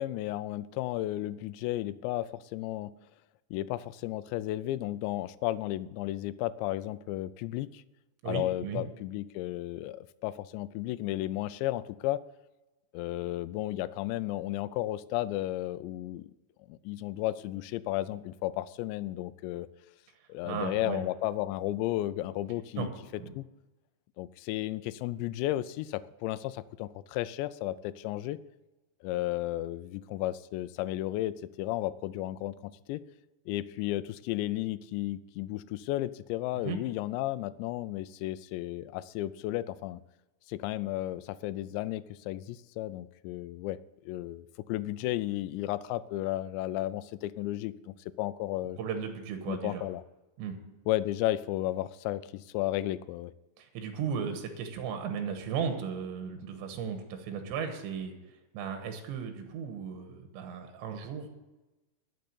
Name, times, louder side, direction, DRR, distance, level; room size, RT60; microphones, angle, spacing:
voice 1, 0.0-2.9 3.5-7.8 8.3-12.2 12.9-16.3 16.7-19.7 20.3-22.9 23.4-23.5 24.2-28.4 29.0-33.0 33.5-40.0 40.5-43.8 44.1-48.8 49.5-50.0 50.9-53.3, left 15 dB, 85° left, 16 dB, 2.8 m, -33 dB
voice 2, 8.2-8.8 20.4-21.0 22.8-22.9 23.2-23.3 36.6-36.8 48.8-49.8 50.4-50.6 53.6-58.1 58.5-61.3, right 7 dB, 85° right, 6 dB, 3.5 m, -35 dB
12.5 x 6.6 x 8.6 m, 1.1 s
omnidirectional pair, 5.1 m